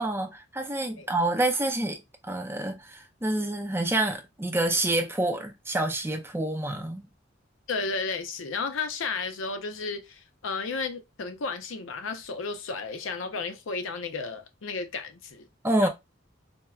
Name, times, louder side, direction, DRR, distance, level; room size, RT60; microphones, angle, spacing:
voice 1, 0.0-7.1 15.6-15.9, right 1 dB, 10° right, 0.4 m, -28 dB
voice 2, 7.7-15.5 15.8-15.9, left 4 dB, 90° left, 0.6 m, -33 dB
4.4 x 2.0 x 2.3 m
head